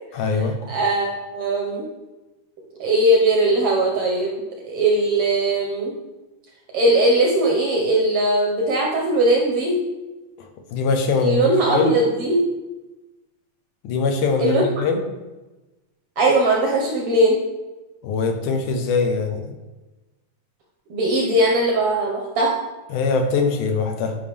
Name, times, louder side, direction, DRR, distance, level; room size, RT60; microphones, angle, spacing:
voice 1, 0.1-0.6 10.4-11.9 13.8-15.0 18.0-19.5 22.9-24.2, left 4 dB, 90° left, 4 dB, 2.4 m, -22 dB
voice 2, 0.7-1.8 2.8-5.9 6.7-9.8 11.2-12.4 14.4-14.6 16.2-17.4 20.9-22.5, right 1 dB, 70° right, -1 dB, 1.4 m, -19 dB
8.9 x 5.4 x 3.4 m, 1.1 s
omnidirectional pair, 3.5 m